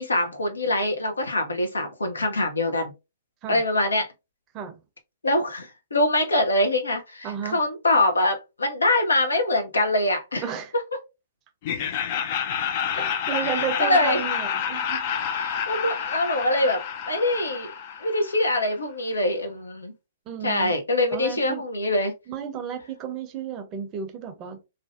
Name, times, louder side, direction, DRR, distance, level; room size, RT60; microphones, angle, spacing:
voice 1, 0.0-2.9 3.5-4.1 5.2-10.4 12.9-13.0 13.4-14.2 15.2-17.7 18.0-19.9 20.4-22.1, left 1 dB, 80° left, 0.6 m, -24 dB
voice 2, 7.2-7.6 10.4-10.7 12.9-15.1 20.3-20.7 21.1-21.6 22.3-24.7, right 8 dB, 30° right, 0.6 m, -32 dB
Laughter, 11.6-18.6, left 8 dB, 45° left, 0.4 m, -29 dB
2.5 x 2.1 x 2.4 m
figure-of-eight pair, 120°, 0 cm